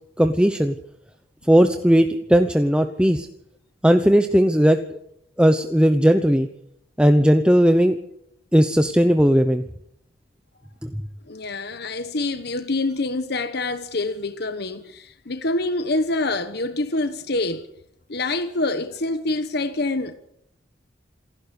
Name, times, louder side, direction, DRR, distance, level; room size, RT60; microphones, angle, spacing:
voice 1, 0.2-0.8 1.5-3.3 3.8-5.0 5.4-6.5 7.0-8.0 8.5-9.6 10.8-10.9, equal, 5° right, 0.9 m, -17 dB
voice 2, 11.3-17.6 18.1-20.1, left 2 dB, 55° left, 1.2 m, -26 dB
27.5 x 12.0 x 8.3 m
head